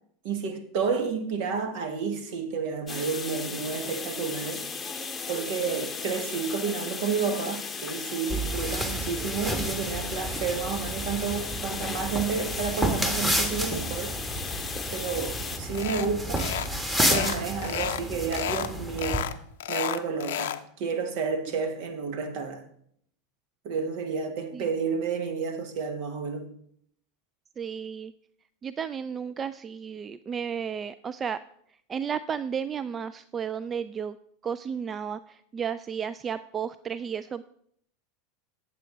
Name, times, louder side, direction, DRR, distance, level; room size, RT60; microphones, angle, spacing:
voice 1, 0.2-4.6 5.3-14.2 14.9-16.4 17.1-19.3 19.7-22.6 23.6-26.5, right 5 dB, 60° right, 1.3 m, -31 dB
sound 1, 2.9-15.6, left 4 dB, 20° left, 0.8 m, -36 dB
sound 2, 8.3-19.2, right 1 dB, 10° right, 1.5 m, -31 dB
sound 3, 15.7-16.1 16.4-16.7 17.0-18.0 18.3-18.7 19.0-20.6, left 11 dB, 75° left, 0.5 m, -31 dB
voice 2, 27.6-28.1 28.6-31.4 31.9-34.2 34.4-37.4, right 7 dB, 30° right, 0.3 m, -33 dB
8.8 x 7.5 x 3.9 m
hypercardioid pair, 90°, 0 cm